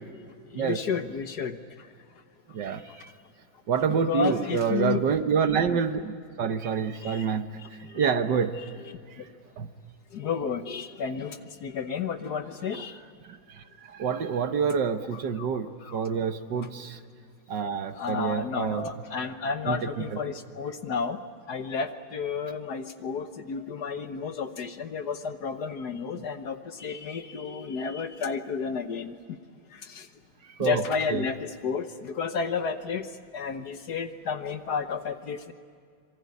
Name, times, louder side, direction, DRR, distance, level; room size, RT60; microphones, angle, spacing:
voice 1, 0.5-1.9 2.9-3.0 3.9-5.0 5.7-5.8 7.0-7.3 7.9-8.0 9.2-9.3 10.1-13.0 15.4-15.5 15.8-16.0 16.6-16.7 17.9-21.2 21.5-29.4 29.7-30.1 30.6-33.1 33.3-35.5, left 5 dB, 55° left, 9 dB, 1.5 m, -32 dB
voice 2, 2.5-3.1 3.7-8.6 9.1-9.3 9.6-9.7 13.2-17.0 17.5-18.9 19.7-20.2 26.2-26.3 30.4-30.8 31.1-31.3, right 6 dB, 60° right, 9 dB, 1.6 m, -28 dB
26.5 x 23.0 x 9.6 m, 2.2 s
omnidirectional pair, 2.2 m